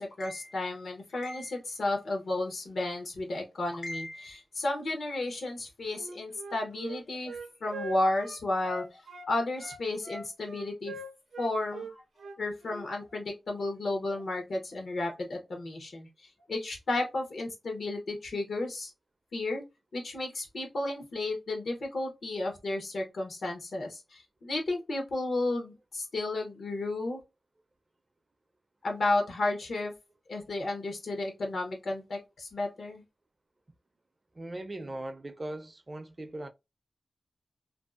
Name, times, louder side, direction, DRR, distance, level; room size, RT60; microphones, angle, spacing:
voice 1, 0.0-9.0 9.3-11.0 11.4-12.0 12.4-18.9 19.3-19.6 19.9-27.2 28.8-29.9 30.3-33.0, left 2 dB, 75° left, 0.7 m, -33 dB
Wind instrument woodwind instrument, 5.9-9.3 9.6-12.9, right 3 dB, 90° right, 0.6 m, -42 dB
voice 2, 34.3-36.5, right 1 dB, 30° right, 0.4 m, -39 dB
2.6 x 2.3 x 2.3 m
wide cardioid pair, 135°, 0 cm